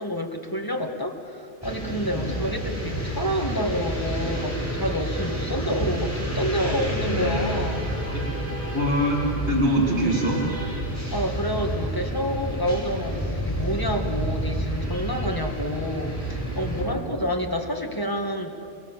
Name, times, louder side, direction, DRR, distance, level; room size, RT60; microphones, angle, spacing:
voice 1, 0.0-8.0 11.1-18.5, equal, 20° left, 2 dB, 1.9 m, -28 dB
sound 1, 1.6-16.8, right 1 dB, 15° right, 5.8 m, -29 dB
voice 2, 8.7-10.4 16.8-17.0, equal, 75° right, -5 dB, 3.6 m, -23 dB
29.5 x 19.0 x 7.4 m, 2.6 s
omnidirectional pair, 1.1 m